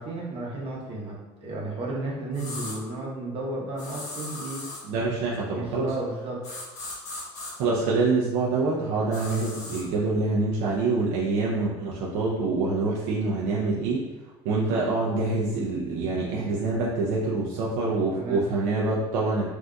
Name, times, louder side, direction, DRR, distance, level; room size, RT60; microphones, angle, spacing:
voice 1, 0.0-4.6 5.5-6.4 18.1-18.4, right 2 dB, 50° right, -3 dB, 0.9 m, -33 dB
sound 1, 2.3-2.8 3.8-4.8 6.4-7.5 9.1-9.8, left 2 dB, 70° left, 1.2 m, -37 dB
voice 2, 4.9-5.9 7.6-14.0 14.4-19.4, right 3 dB, 80° right, -5 dB, 0.5 m, -26 dB
3.7 x 2.6 x 2.2 m, 1.1 s
supercardioid pair, 105°, 12 cm